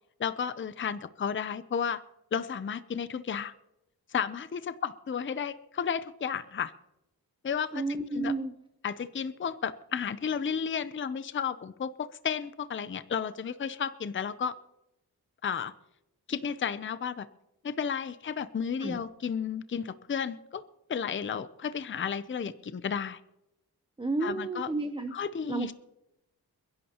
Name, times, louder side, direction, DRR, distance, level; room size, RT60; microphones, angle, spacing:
voice 1, 0.2-2.0 2.3-3.5 4.1-6.7 7.4-8.3 8.8-14.5 15.4-15.7 16.3-17.3 17.6-20.6 20.9-23.2 24.2-24.7 25.1-25.7, left 7 dB, 30° left, 13 dB, 0.5 m, -33 dB
voice 2, 7.7-8.5 18.8-19.0 24.0-25.1 25.5-25.7, right 3 dB, 15° right, 6 dB, 0.6 m, -31 dB
28.5 x 11.0 x 2.9 m, 0.89 s
wide cardioid pair, 135°, 38 cm